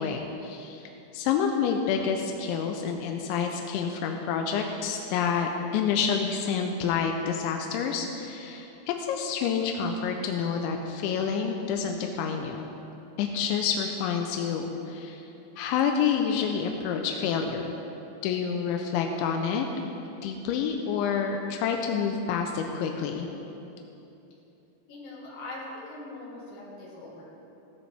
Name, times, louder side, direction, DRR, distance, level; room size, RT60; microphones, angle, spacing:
voice 1, 0.0-12.7 13.2-15.2 15.6-17.7 18.2-19.7 20.2-23.3, left 6 dB, 85° left, 3 dB, 2.7 m, -28 dB
voice 2, 24.9-27.2, left 2 dB, 50° left, -6 dB, 4.2 m, -41 dB
17.5 x 13.0 x 3.4 m, 2.9 s
omnidirectional pair, 5.9 m